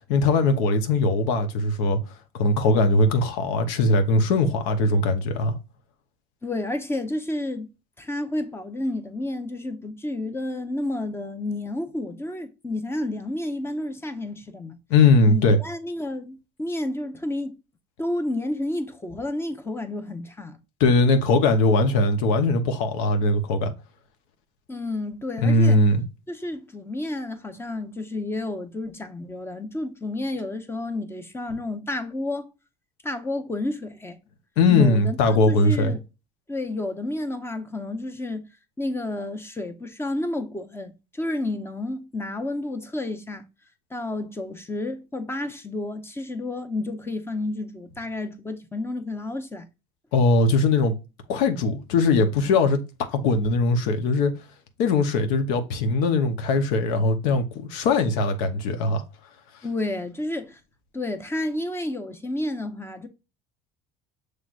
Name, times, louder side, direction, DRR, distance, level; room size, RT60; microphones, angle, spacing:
voice 1, 0.1-2.0 2.3-5.6 14.9-15.6 20.8-23.7 25.4-26.0 34.6-35.9 50.1-51.0 51.3-52.8 53.1-54.3 54.8-59.0, left 3 dB, 85° left, 0.9 m, -20 dB
voice 2, 6.4-7.7 8.0-14.8 15.3-17.6 18.0-20.6 24.7-25.8 26.3-32.5 33.0-34.2 34.7-36.0 36.5-38.5 38.8-43.5 43.9-49.7 59.6-60.6 60.9-63.1, left 2 dB, 15° left, 0.7 m, -30 dB
5.9 x 3.3 x 2.4 m
supercardioid pair, 110°, 18 cm